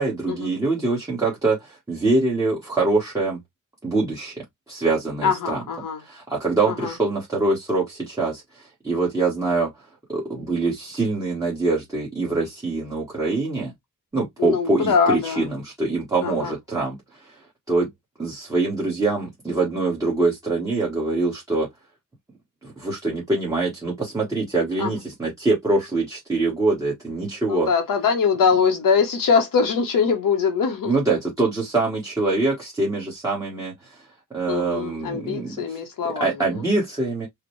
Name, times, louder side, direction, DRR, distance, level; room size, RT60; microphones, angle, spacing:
voice 1, 0.0-3.4 3.8-5.6 6.0-9.7 10.1-13.7 14.1-17.4 17.7-17.9 18.2-21.7 22.6-27.7 30.8-34.0 34.3-35.8 36.2-37.3, right 3 dB, 10° right, 1.3 m, -24 dB
voice 2, 5.2-6.0 6.6-6.9 14.4-15.4 16.2-16.5 24.8-24.9 27.5-30.9 34.5-36.3, left 6 dB, 80° left, 1.0 m, -22 dB
4.9 x 2.2 x 3.1 m
wide cardioid pair, 160°, 32 cm